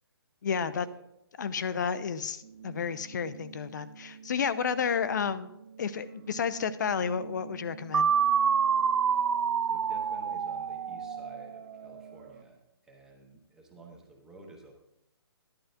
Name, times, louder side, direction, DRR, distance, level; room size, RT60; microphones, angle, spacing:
voice 1, 0.4-0.9 1.4-5.5 5.8-8.1, left 6 dB, 45° left, 13 dB, 0.6 m, -31 dB
sound 1, 2.4-12.4, right 6 dB, 20° right, 0.4 m, -49 dB
sound 2, 7.9-11.8, right 7 dB, 85° right, 0.4 m, -27 dB
voice 2, 9.6-14.7, right 2 dB, 5° right, 1 dB, 1.0 m, -52 dB
14.5 x 11.5 x 2.6 m, 0.82 s
hypercardioid pair, 165°, 14 cm